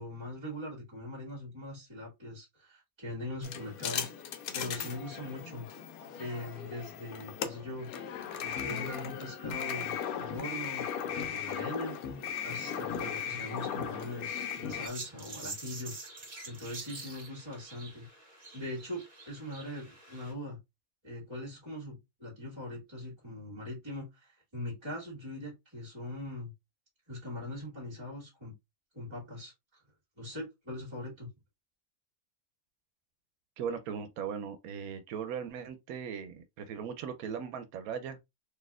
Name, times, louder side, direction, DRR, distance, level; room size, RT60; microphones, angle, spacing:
voice 1, 0.0-5.7 6.2-7.9 8.4-15.9 16.4-18.1 18.5-20.6 21.0-26.5 27.1-28.5 28.9-29.8 30.2-31.3, left 1 dB, 20° right, 1.7 m, -41 dB
sound 1, 3.4-14.9, left 8 dB, 90° left, 1.1 m, -37 dB
sound 2, 14.8-20.3, right 3 dB, 35° right, 1.5 m, -46 dB
voice 2, 33.6-38.2, right 7 dB, 90° right, 1.0 m, -38 dB
4.1 x 2.8 x 2.3 m
omnidirectional pair, 1.5 m